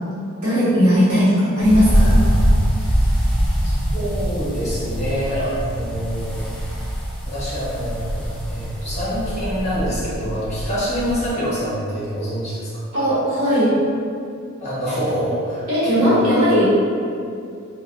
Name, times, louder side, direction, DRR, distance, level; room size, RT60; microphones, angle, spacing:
voice 1, 0.4-2.1 12.9-13.7 15.7-16.8, equal, 80° right, -10 dB, 0.9 m, -17 dB
sound 1, 1.6-11.3, equal, 5° left, 0.3 m, -22 dB
voice 2, 3.6-6.4 7.3-12.7 14.6-16.3, equal, 30° left, -9 dB, 0.7 m, -26 dB
2.6 x 2.0 x 2.4 m, 2.4 s
head